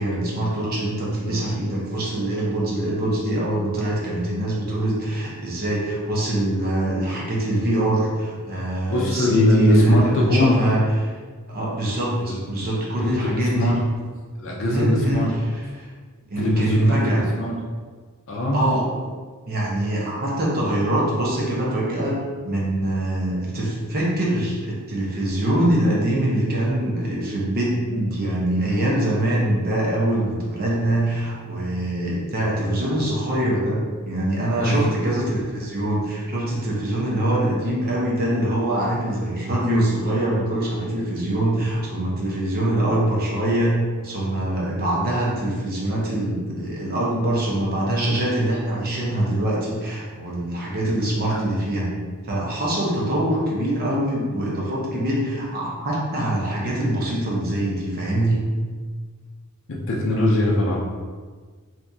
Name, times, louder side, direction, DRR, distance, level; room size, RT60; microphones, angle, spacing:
voice 1, 0.0-11.1 11.5-13.8 14.7-15.9 16.3-17.2 18.5-18.9 19.5-22.2 22.4-51.9 52.2-58.5, right 1 dB, 45° right, -4 dB, 0.8 m, -23 dB
voice 2, 8.8-10.6 12.3-12.4 13.0-13.8 14.4-15.3 16.4-17.5 18.3-18.6 34.6-34.9 51.2-51.5 59.7-60.8, left 1 dB, 60° left, -3 dB, 0.5 m, -21 dB
2.7 x 2.6 x 3.5 m, 1.5 s
head